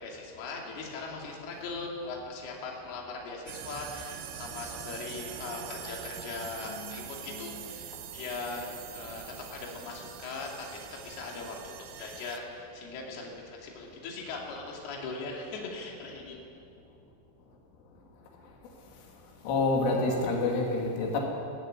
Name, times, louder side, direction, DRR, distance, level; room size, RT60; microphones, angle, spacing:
voice 1, 0.0-16.4, left 3 dB, 60° left, -1 dB, 4.3 m, -40 dB
sound 1, 3.5-12.4, right 10 dB, 75° right, 3.1 m, -43 dB
voice 2, 19.4-21.2, left 3 dB, 90° left, 0 dB, 5.1 m, -28 dB
18.0 x 14.5 x 9.9 m, 2.5 s
omnidirectional pair, 5.4 m